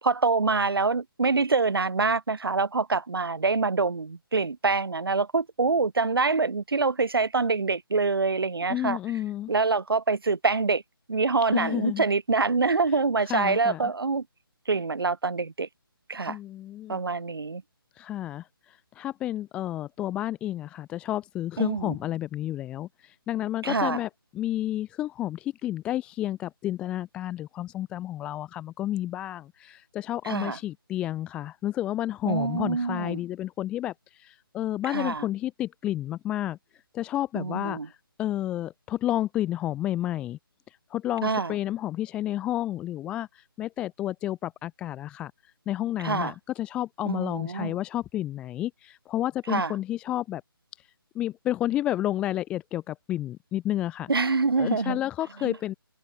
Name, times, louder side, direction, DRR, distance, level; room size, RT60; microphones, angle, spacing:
voice 1, 0.0-9.0 9.5-10.8 11.1-14.2 14.7-15.7 16.1-16.4 16.9-17.6 21.6-22.0 23.6-24.0 30.2-30.6 32.2-33.2 34.9-35.2 37.4-37.9 41.2-41.5 46.0-46.3 47.1-47.7 49.5-49.7 54.1-55.0 55.4-55.6, right 4 dB, 70° right, 0.7 m, -25 dB
voice 2, 8.7-9.5 11.5-12.0 12.9-13.9 16.3-17.0 17.9-40.4 40.7-50.4 50.8-55.7, left 13 dB, 10° left, 0.5 m, -31 dB
figure-of-eight pair, 150°, 12 cm